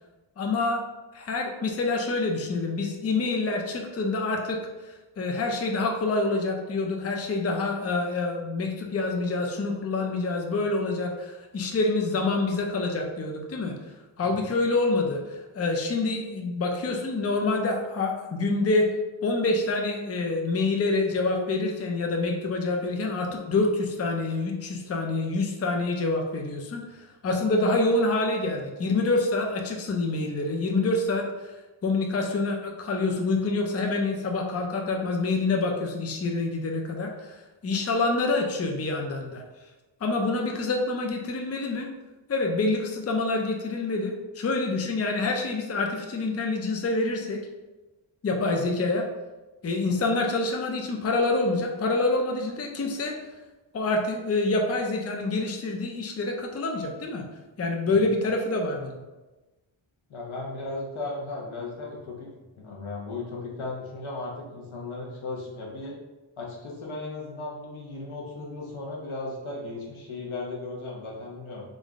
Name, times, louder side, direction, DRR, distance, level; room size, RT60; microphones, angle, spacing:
voice 1, 0.4-0.8 1.1-13.8 14.2-18.9 19.2-26.8 27.2-31.2 31.8-37.3 37.6-39.4 40.0-41.9 42.3-47.4 48.2-49.1 49.6-53.2 53.7-57.3 57.6-59.0, left 3 dB, 35° left, 2 dB, 0.5 m, -26 dB
voice 2, 60.1-62.3 62.6-66.0 66.4-71.6, left 2 dB, 90° left, -2 dB, 1.0 m, -36 dB
3.6 x 2.5 x 3.5 m, 1.1 s
wide cardioid pair, 105°, 47 cm